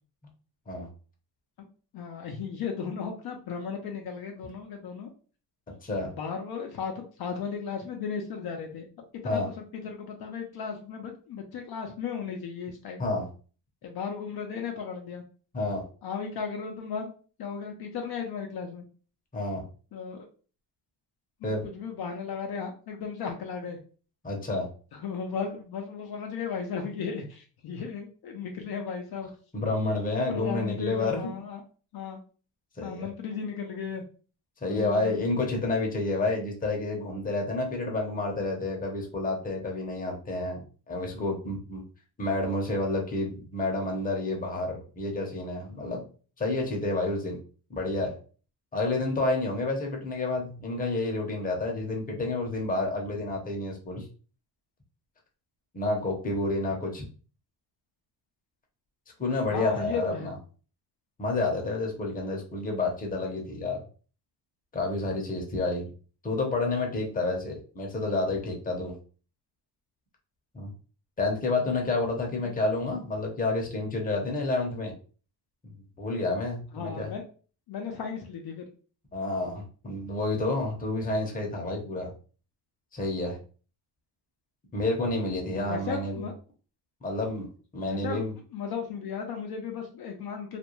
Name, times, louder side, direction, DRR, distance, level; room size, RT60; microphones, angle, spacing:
voice 1, 1.9-5.1 6.0-8.9 9.2-13.0 13.8-15.2 16.0-17.1 17.4-18.8 19.9-20.3 21.4-23.8 24.9-29.3 30.3-31.6 31.9-32.2 32.8-34.0 34.7-35.2 59.5-60.3 72.4-72.6 76.7-77.2 77.7-78.7 85.7-86.3 87.9-88.3 88.5-90.6, left 6 dB, 55° left, 2 dB, 0.6 m, -35 dB
voice 2, 19.3-19.6 21.4-21.6 24.2-24.7 29.5-31.2 32.8-33.1 34.6-40.6 40.9-41.8 42.2-46.1 46.4-47.4 47.7-48.2 48.7-54.1 55.7-57.0 59.2-60.3 61.2-63.8 64.7-65.9 66.2-68.9 70.5-70.7 71.2-74.9 76.0-77.1 79.1-82.1 82.9-83.4 84.7-86.3 87.0-87.5 87.7-88.3, left 2 dB, 20° left, 0 dB, 0.8 m, -29 dB
2.5 x 2.2 x 3.0 m, 0.39 s
cardioid pair, 105°, 45 cm